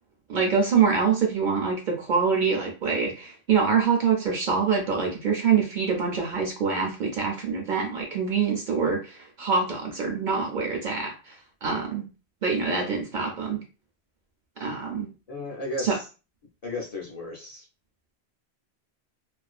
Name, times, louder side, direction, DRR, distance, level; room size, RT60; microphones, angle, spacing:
voice 1, 0.3-12.1 12.4-13.6 14.6-15.1 15.8-16.0, right 5 dB, 55° right, 1 dB, 0.6 m, -25 dB
voice 2, 15.3-16.1 16.6-17.7, left 1 dB, 45° left, -3 dB, 0.5 m, -34 dB
2.4 x 2.2 x 2.3 m, 0.32 s
omnidirectional pair, 1.1 m